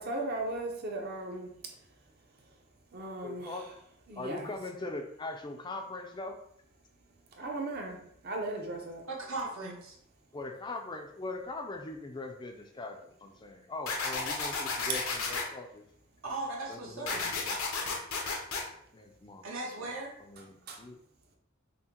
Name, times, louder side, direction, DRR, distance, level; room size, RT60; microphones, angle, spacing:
voice 1, 0.0-1.9 2.5-2.6 2.9-3.6 4.1-4.5 7.3-9.1 20.4-20.8, right 2 dB, 50° right, 1 dB, 0.8 m, -38 dB
voice 2, 3.2-3.8 4.2-6.4 10.3-15.8 16.7-18.1 18.9-19.5 19.8-21.0, left 2 dB, 20° left, 4 dB, 0.4 m, -41 dB
voice 3, 9.1-10.0 16.2-17.3 19.4-20.1, right 2 dB, 75° right, -2 dB, 1.0 m, -37 dB
sound 1, 13.9-15.4 17.1-18.6, left 4 dB, 80° left, 0.7 m, -33 dB
5.5 x 2.1 x 2.9 m, 0.69 s
head